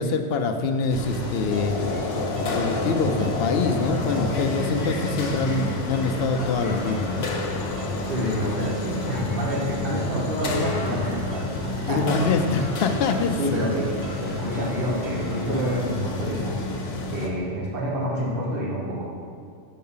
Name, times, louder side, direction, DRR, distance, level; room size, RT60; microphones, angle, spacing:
voice 1, 0.0-1.8 2.5-7.3 11.9-13.4, left 4 dB, 65° left, 6 dB, 0.7 m, -25 dB
sound 1, 0.9-17.3, left 2 dB, 80° left, 1.1 m, -29 dB
sound 2, 1.1-17.2, right 5 dB, 65° right, 0.9 m, -43 dB
sound 3, 3.7-5.8 6.3-11.4 12.1-13.7 14.0-15.9, left 2 dB, 25° left, 1.1 m, -46 dB
voice 2, 8.0-12.1 13.4-16.6 17.1-19.1, equal, 50° right, -4 dB, 1.3 m, -28 dB
6.5 x 4.7 x 5.5 m, 2.3 s
omnidirectional pair, 1.2 m